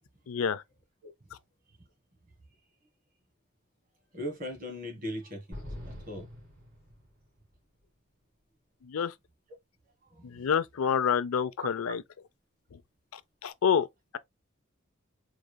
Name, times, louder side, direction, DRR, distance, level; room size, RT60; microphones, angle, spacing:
voice 1, 0.3-0.6 8.8-9.1 10.2-12.0 13.4-13.9, left 7 dB, 85° left, 0.5 m, -27 dB
voice 2, 4.1-6.3 10.1-10.4 11.6-12.0, equal, 45° right, 1.8 m, -39 dB
sound 1, 5.5-7.4, equal, 65° right, 3.1 m, -44 dB
4.8 x 4.0 x 2.2 m
head